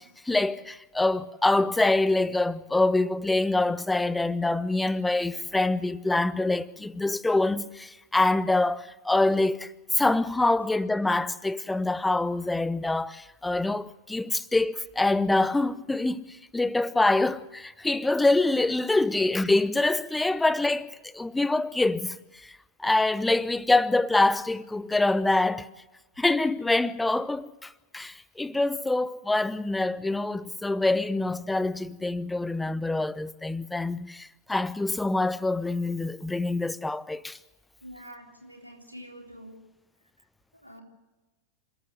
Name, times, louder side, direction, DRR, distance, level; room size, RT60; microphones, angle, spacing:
voice 1, 0.0-22.5 22.8-25.7 26.2-37.4, left 2 dB, 5° left, 0.8 m, -25 dB
voice 2, 37.8-39.6 40.6-40.8, equal, 90° right, 3.6 m, -46 dB
27.5 x 13.5 x 7.7 m
figure-of-eight pair, 90°, 0 cm